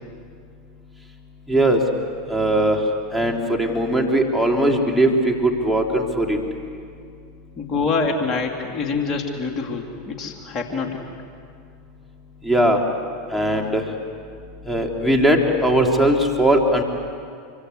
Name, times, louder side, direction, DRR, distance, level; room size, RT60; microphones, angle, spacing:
voice 1, 1.5-1.8 2.3-2.8 3.1-6.4 12.4-12.8 13.3-13.8 14.7-16.8, right 1 dB, ahead, 1 dB, 3.7 m, -19 dB
voice 2, 7.6-11.0, left 4 dB, 35° left, 2 dB, 3.2 m, -25 dB
27.5 x 25.0 x 8.3 m, 2.3 s
hypercardioid pair, 90°, 0 cm